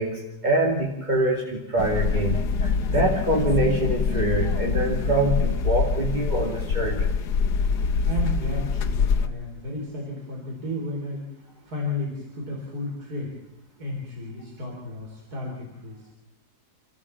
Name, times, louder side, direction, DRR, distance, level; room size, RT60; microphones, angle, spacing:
voice 1, 0.0-7.1, right 1 dB, 25° right, -2 dB, 2.6 m, -25 dB
sound 1, 1.8-9.3, left 5 dB, 80° left, 1.5 m, -24 dB
voice 2, 8.0-11.2 11.6-13.3 13.8-16.1, left 1 dB, 65° right, -2 dB, 4.7 m, -33 dB
28.5 x 14.5 x 7.2 m, 0.89 s
omnidirectional pair, 1.8 m